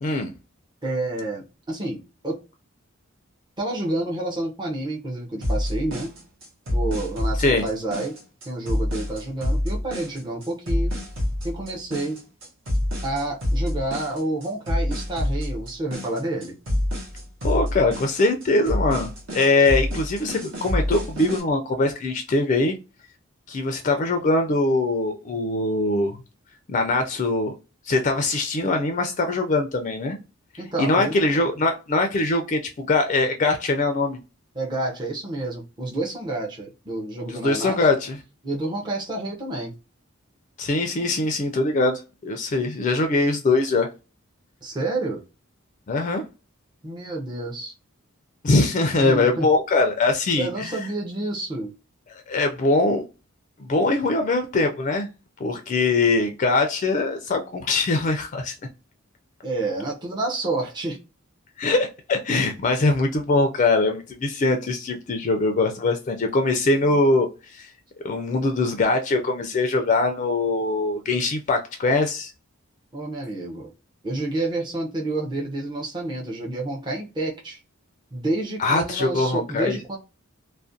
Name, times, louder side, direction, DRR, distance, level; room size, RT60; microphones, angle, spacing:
voice 1, 0.0-0.3 7.4-7.7 17.4-22.8 23.5-26.2 26.7-27.5 27.8-30.2 30.8-34.2 37.3-38.2 40.6-43.9 45.9-46.2 48.4-50.9 52.1-53.1 53.6-55.1 55.4-58.5 61.6-67.7 68.0-72.3 78.6-79.8, left 2 dB, 35° left, 0.3 m, -22 dB
voice 2, 0.8-2.4 3.6-6.1 6.7-8.2 8.5-11.0 11.4-12.2 13.0-16.6 30.6-31.1 34.5-37.8 38.4-39.7 44.6-45.2 46.8-47.7 49.0-49.5 50.4-51.7 59.4-61.0 72.9-73.7 74.0-77.6 78.1-80.0, right 2 dB, 20° right, 0.5 m, -29 dB
sound 1, 5.4-21.4, left 1 dB, 65° right, 0.9 m, -27 dB
2.4 x 2.1 x 2.5 m
head